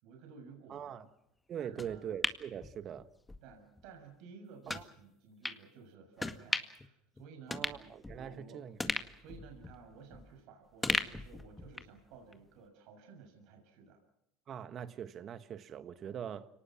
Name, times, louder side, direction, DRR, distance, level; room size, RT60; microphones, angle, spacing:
voice 1, 0.0-1.1 1.6-2.0 3.4-8.6 9.2-14.0, right 5 dB, 65° right, 3 dB, 6.6 m, -55 dB
voice 2, 0.7-1.0 1.5-3.1 4.7-4.8 7.5-8.8 14.5-16.5, right 9 dB, 45° right, 12 dB, 1.6 m, -42 dB
sound 1, 1.8-3.4 3.8-3.9 4.7-4.9 5.4-5.6 6.2-6.9 7.2-7.3 7.5-8.4 8.8-10.4 10.8-12.0 12.3-12.4, left 2 dB, 15° left, 1.9 m, -37 dB
29.5 x 19.0 x 6.1 m, 0.82 s
hypercardioid pair, 80°, 0 cm